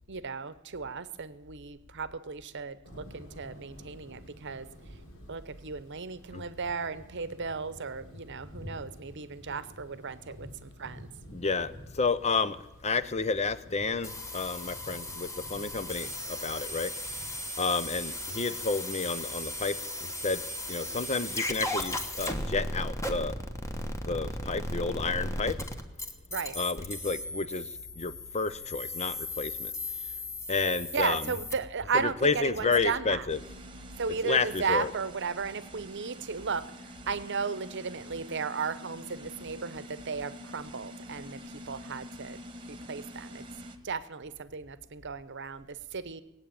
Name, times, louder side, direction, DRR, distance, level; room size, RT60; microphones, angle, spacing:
voice 1, 0.1-4.7 5.3-11.1 26.3-26.6 30.9-33.3 34.0-36.7 37.1-41.4 41.7-42.4 42.7-43.4 43.8-46.2, right 5 dB, 55° right, 14 dB, 0.9 m, -35 dB
sound 1, 2.8-18.6, equal, 70° left, 3.4 m, -50 dB
voice 2, 11.3-16.9 17.6-20.4 20.7-23.4 24.0-25.6 26.6-29.7 30.5-31.4 31.9-33.4 34.1-34.9, left 4 dB, 30° left, 15 dB, 0.6 m, -31 dB
sound 2, 14.0-31.5, left 1 dB, 15° left, 1.3 m, -36 dB
sound 3, 33.3-43.8, equal, 25° right, 1.3 m, -46 dB
20.0 x 8.3 x 8.8 m, 0.95 s
head